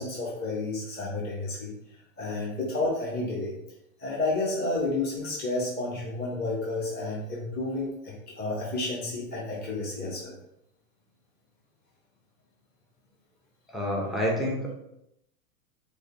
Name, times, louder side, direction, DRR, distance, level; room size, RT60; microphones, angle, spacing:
voice 1, 0.0-1.7 2.2-3.6 4.0-10.3, left 2 dB, 20° left, -4 dB, 0.8 m, -31 dB
voice 2, 13.7-14.7, equal, ahead, -2 dB, 0.3 m, -28 dB
4.6 x 2.2 x 2.6 m, 0.81 s
hypercardioid pair, 100°, 44 cm